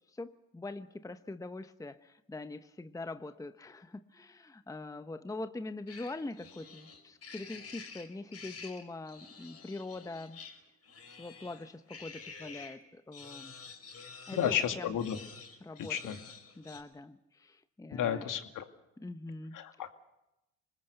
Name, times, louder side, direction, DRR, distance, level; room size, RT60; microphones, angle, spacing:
voice 1, 0.1-10.4 11.2-13.5 14.3-15.0 15.6-16.2 16.6-18.3 19.0-19.6, left 2 dB, 10° left, 11 dB, 0.9 m, -43 dB
sound 1, 5.9-12.8 13.1-16.8, left 5 dB, 40° left, 4.8 m, -49 dB
voice 2, 14.3-15.2 15.9-16.2 17.9-18.7 19.5-19.9, left 9 dB, 55° left, 7 dB, 2.4 m, -32 dB
25.5 x 20.0 x 6.8 m, 0.92 s
hypercardioid pair, 65°, 38 cm